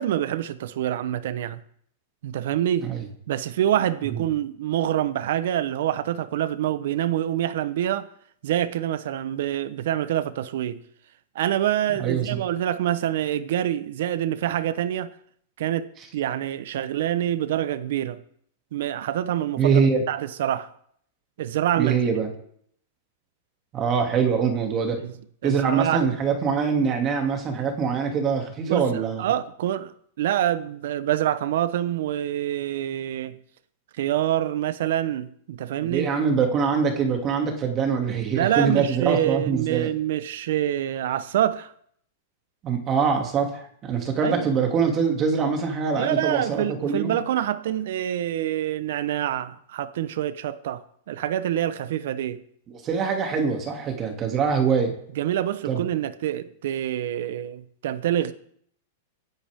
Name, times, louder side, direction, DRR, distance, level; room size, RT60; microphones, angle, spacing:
voice 1, 0.0-1.6 2.2-2.9 3.3-8.1 8.4-10.8 11.3-15.1 15.6-18.2 18.7-19.8 20.1-20.7 21.4-22.0 25.0-25.1 25.4-26.1 28.6-33.4 34.0-36.1 38.3-41.7 44.2-44.5 45.9-52.4 55.2-58.3, right 11 dB, 70° right, 1.1 m, -26 dB
voice 2, 12.0-12.4 19.6-20.0 21.8-22.3 23.7-25.0 25.4-29.3 35.8-39.9 42.6-47.2 52.7-55.0 55.7-55.8, right 6 dB, 25° right, 2.7 m, -24 dB
24.5 x 10.0 x 3.7 m
supercardioid pair, 150°, 0 cm